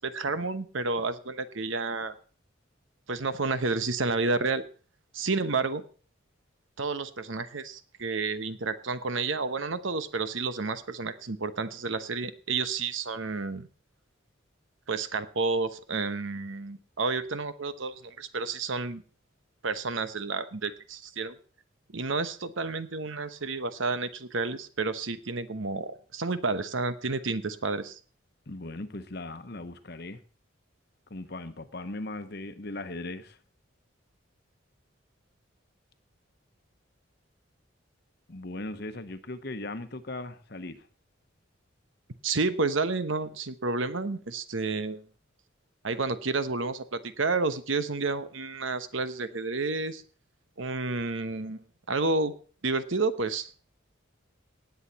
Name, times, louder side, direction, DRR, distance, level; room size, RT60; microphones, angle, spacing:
voice 1, 0.0-2.1 3.1-4.6 5.1-5.8 6.8-13.7 14.9-19.0 19.6-21.4 21.9-28.0 42.2-45.0 45.8-50.0 50.6-52.3 52.6-53.6, right 3 dB, 70° right, 12 dB, 1.0 m, -30 dB
voice 2, 28.5-30.2 31.1-33.4 38.3-40.8, left 2 dB, 50° left, 10 dB, 1.0 m, -38 dB
18.5 x 8.2 x 4.2 m, 0.40 s
head